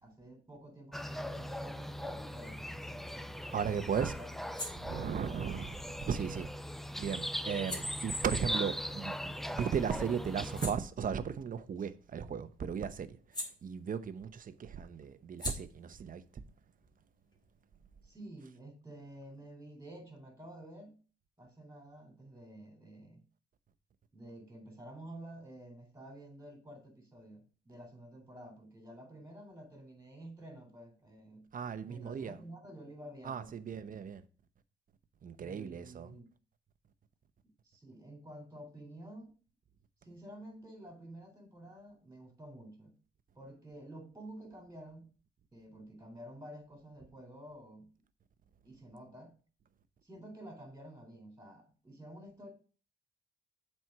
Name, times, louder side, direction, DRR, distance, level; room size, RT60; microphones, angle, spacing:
voice 1, 0.0-2.6 4.1-4.3 18.0-21.0 21.4-23.2 24.1-31.5 31.9-33.5 35.4-36.3 37.6-39.3 40.0-42.9 43.4-45.1 45.5-47.9 48.6-49.4 50.0-52.5, right 1 dB, 15° right, 3.7 m, -50 dB
sound 1, 0.9-10.7, equal, ahead, 0.5 m, -40 dB
voice 2, 3.5-4.1 4.7-6.5 7.0-16.4 31.5-32.4 33.2-34.2 35.2-36.1, right 7 dB, 45° right, 0.9 m, -36 dB
sound 2, 4.4-9.6 10.0-14.3 14.5-17.9, left 1 dB, 20° left, 3.4 m, -48 dB
7.5 x 4.5 x 6.0 m
cardioid pair, 90°, 20 cm